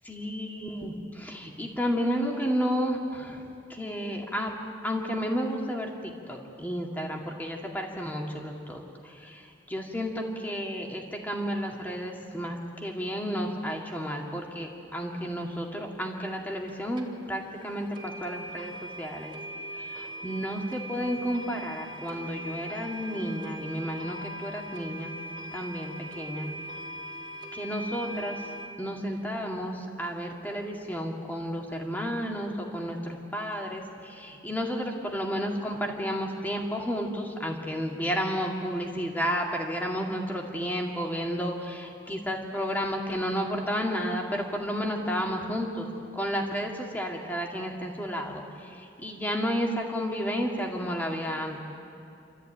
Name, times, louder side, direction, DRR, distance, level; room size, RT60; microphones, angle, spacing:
voice 1, 0.1-4.5 4.8-19.3 19.7-25.1 25.5-26.5 27.5-28.5 28.8-45.9 46.1-51.6, equal, 10° left, 0 dB, 2.1 m, -32 dB
sound 1, 16.7-16.8 17.0-17.1 17.5-17.6 17.9-28.7, right 1 dB, 25° right, 2.3 m, -40 dB
29.0 x 13.5 x 9.0 m, 2.7 s
head